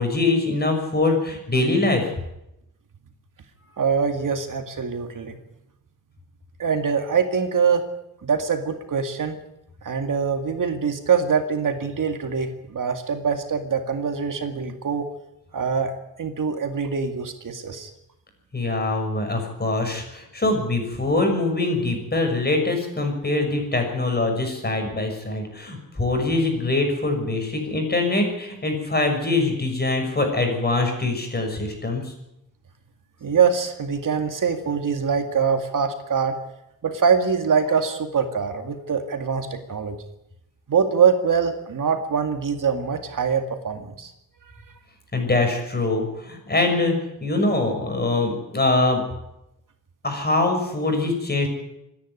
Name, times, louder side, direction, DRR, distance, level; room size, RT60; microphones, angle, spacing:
voice 1, 0.0-2.1 18.5-32.1 45.1-47.0 47.2-49.0 50.0-51.5, left 2 dB, 25° left, 4 dB, 6.3 m, -23 dB
voice 2, 3.8-5.4 6.6-7.8 8.2-9.4 9.8-15.1 15.5-15.9 16.2-17.9 33.2-36.4 36.8-40.0 40.7-44.1, right 6 dB, 60° right, 6 dB, 2.2 m, -23 dB
26.0 x 10.5 x 9.8 m, 0.86 s
wide cardioid pair, 110°, 36 cm